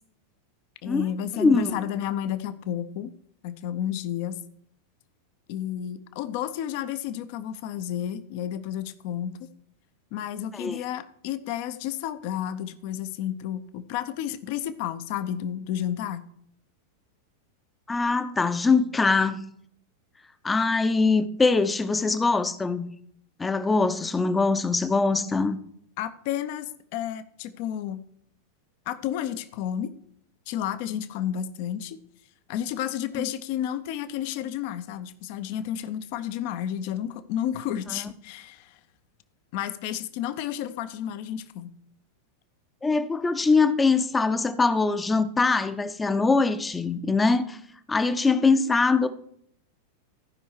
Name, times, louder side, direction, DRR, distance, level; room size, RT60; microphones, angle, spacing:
voice 1, 0.8-3.1 3.4-4.4 5.5-9.3 10.1-16.3 25.1-25.3 26.0-28.0 28.9-29.9 30.5-32.0 32.5-38.8 39.5-41.7, left 10 dB, 45° left, 0.7 m, -31 dB
voice 2, 1.3-1.8 10.5-10.8 17.9-19.4 20.4-22.9 23.4-25.6 33.2-33.3 37.9-38.0 42.8-47.6 47.9-49.1, left 4 dB, 10° left, 0.7 m, -23 dB
14.5 x 5.4 x 4.7 m
figure-of-eight pair, 90°, 0 cm